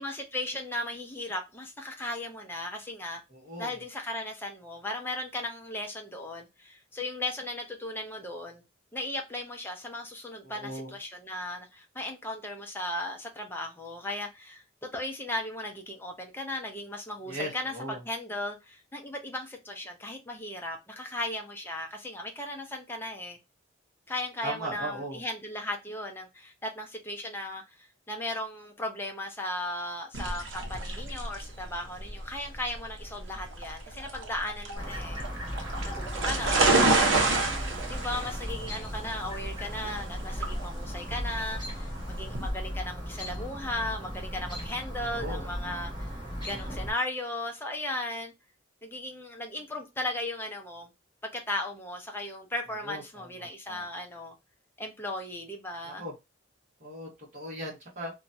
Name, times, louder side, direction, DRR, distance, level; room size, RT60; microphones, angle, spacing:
voice 1, 0.0-3.2 3.6-8.6 8.9-23.4 24.1-35.3 36.0-37.3 37.9-46.1 46.4-48.3 48.8-50.9 51.3-54.3 54.8-56.0, left 1 dB, 10° left, 0.6 m, -36 dB
voice 2, 3.3-3.8 10.4-10.9 17.3-18.0 24.4-25.2 36.4-37.1 45.0-45.5 52.8-53.8 55.8-56.1 56.8-58.1, right 1 dB, 35° right, 1.2 m, -39 dB
sound 1, 30.1-42.5, right 3 dB, 65° right, 0.8 m, -29 dB
Chirp tweet, 34.8-46.9, equal, 20° right, 1.2 m, -37 dB
2.9 x 2.2 x 2.6 m
head